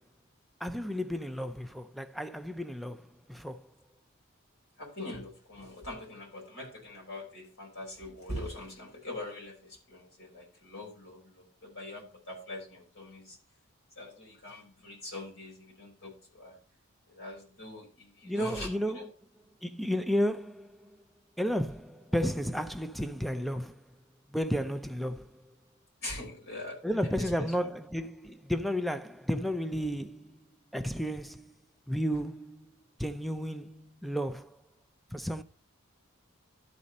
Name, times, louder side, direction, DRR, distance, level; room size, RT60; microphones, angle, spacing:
voice 1, 0.6-3.7 18.2-19.0 19.6-20.9 21.4-23.8 24.3-25.4 26.8-30.4 30.7-31.5 31.9-32.7 33.0-34.6 35.1-35.4, equal, ahead, 0.4 m, -32 dB
voice 2, 4.8-13.4 14.0-16.5 17.1-18.7 18.9-19.0 26.0-26.8 27.2-27.7, left 1 dB, 70° left, 4.8 m, -43 dB
12.5 x 4.2 x 5.1 m
head